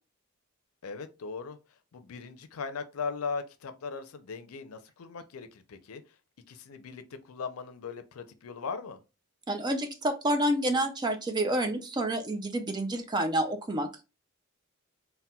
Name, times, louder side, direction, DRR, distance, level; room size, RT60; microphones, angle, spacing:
voice 1, 0.8-1.6 1.9-6.0 6.5-9.0, left 5 dB, 85° left, 0.5 m, -38 dB
voice 2, 9.5-14.0, right 1 dB, 20° right, 0.3 m, -29 dB
4.1 x 2.1 x 2.2 m
head